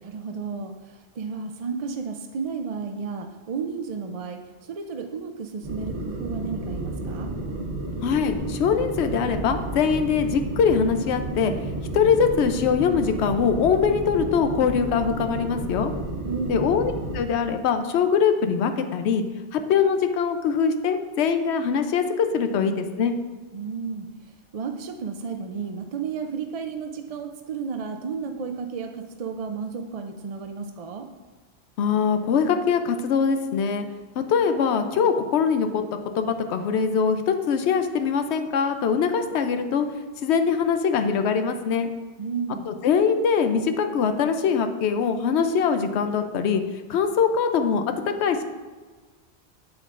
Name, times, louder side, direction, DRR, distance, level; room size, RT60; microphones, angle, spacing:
voice 1, 0.0-7.3 16.2-16.7 23.5-31.1 42.2-42.7, right 5 dB, 55° right, 5 dB, 0.4 m, -33 dB
sound 1, 5.6-17.2, right 1 dB, 85° right, 1.4 m, -32 dB
voice 2, 8.0-11.5 11.9-15.9 16.5-19.2 19.5-23.1 31.8-33.9 34.3-35.8 36.2-39.9 40.2-41.9 42.7-46.6 46.9-48.4, left 6 dB, 80° left, 7 dB, 0.9 m, -22 dB
7.7 x 7.5 x 2.5 m, 1.4 s
omnidirectional pair, 1.1 m